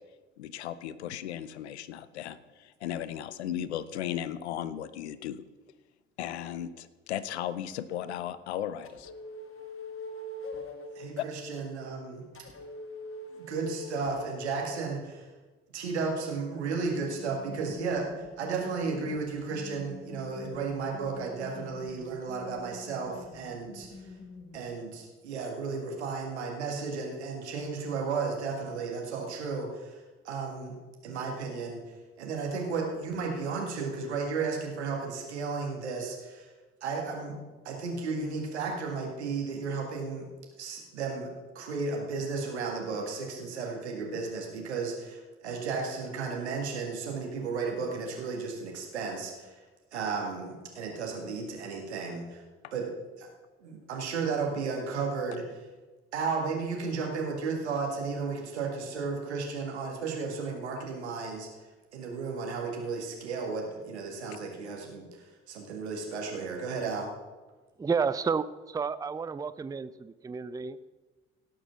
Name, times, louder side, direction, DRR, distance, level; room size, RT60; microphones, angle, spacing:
voice 1, 0.4-5.4 6.2-9.1 11.2-11.3 52.6-52.7, left 11 dB, 80° left, 16 dB, 0.6 m, -36 dB
sound 1, 7.9-8.1 8.8-11.1 12.3-14.5 16.8-24.7, left 2 dB, 40° left, 1.7 m, -44 dB
voice 2, 11.0-12.2 13.3-15.3 15.7-23.9 24.5-30.8 31.0-31.8 32.2-36.5 36.8-37.4 37.7-40.3 40.6-49.6 49.9-52.4 52.7-53.3 53.6-55.5 56.1-61.5 61.9-67.1, right 4 dB, 80° right, 1 dB, 1.8 m, -34 dB
voice 3, 67.8-70.9, right 5 dB, 10° right, 15 dB, 0.5 m, -31 dB
17.0 x 6.2 x 5.7 m, 1.3 s
figure-of-eight pair, 45°, 33 cm